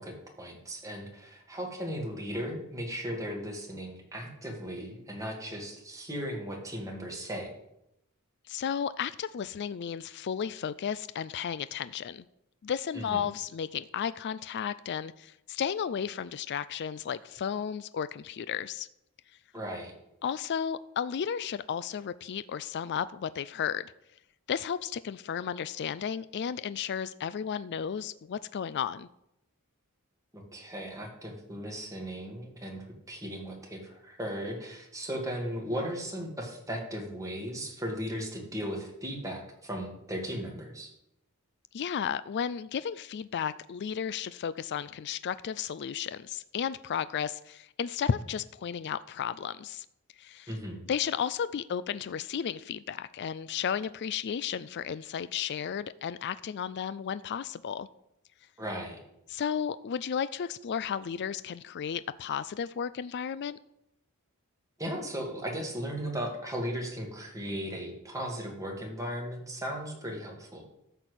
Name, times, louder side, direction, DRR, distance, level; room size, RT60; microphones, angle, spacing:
voice 1, 0.0-7.5 12.9-13.2 19.5-19.9 30.3-40.9 50.5-50.8 58.6-59.0 64.8-70.6, equal, 15° right, 0 dB, 2.4 m, -37 dB
voice 2, 8.5-12.2 12.6-18.9 20.2-23.9 24.5-29.1 41.7-49.9 50.2-50.5 50.9-57.9 59.3-63.6, left 7 dB, 55° left, 16 dB, 0.4 m, -33 dB
13.0 x 4.4 x 8.2 m, 0.82 s
head